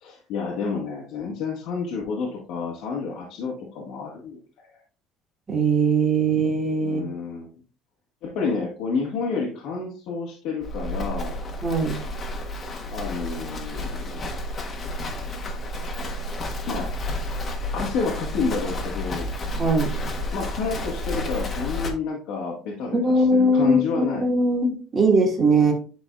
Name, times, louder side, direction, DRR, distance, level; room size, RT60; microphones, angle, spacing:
voice 1, 0.0-4.4 6.8-7.5 8.2-11.4 12.9-14.3 16.7-16.9 17.7-19.3 20.3-24.3, left 4 dB, 75° left, -3 dB, 1.8 m, -29 dB
voice 2, 5.5-7.0 11.6-12.0 19.6-20.1 22.9-25.7, right 2 dB, 25° right, 0 dB, 2.2 m, -21 dB
Livestock farm animals working animals, 10.6-21.9, left 1 dB, 35° left, 1.4 m, -31 dB
10.5 x 4.0 x 2.5 m, 0.38 s
cardioid pair, 125°, 0 cm